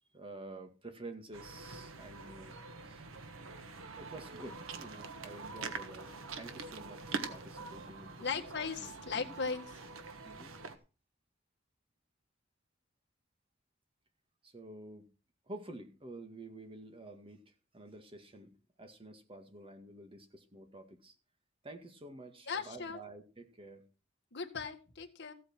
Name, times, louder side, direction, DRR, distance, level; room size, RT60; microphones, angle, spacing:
voice 1, 0.1-2.6 2.8-3.0 4.0-8.3 8.8-8.9 9.2-9.3 10.2-10.5 14.4-15.1 15.5-17.4 17.7-21.1 21.6-23.8, right 2 dB, 25° right, 6 dB, 1.9 m, -50 dB
sound 1, 1.3-10.8, right 4 dB, 90° right, 1.4 m, -45 dB
voice 2, 8.2-9.7 22.5-23.0 24.3-25.3, left 5 dB, 60° left, 3 dB, 1.9 m, -38 dB
15.0 x 8.4 x 4.5 m, 0.34 s
head